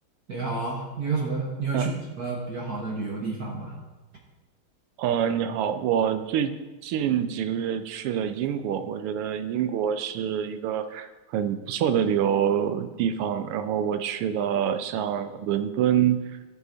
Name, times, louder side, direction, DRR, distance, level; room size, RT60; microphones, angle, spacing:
voice 1, 0.3-3.8, right 3 dB, 50° right, -2 dB, 1.5 m, -30 dB
voice 2, 5.0-16.2, right 9 dB, 90° right, 9 dB, 1.6 m, -26 dB
13.5 x 5.5 x 3.9 m, 1.2 s
omnidirectional pair, 2.4 m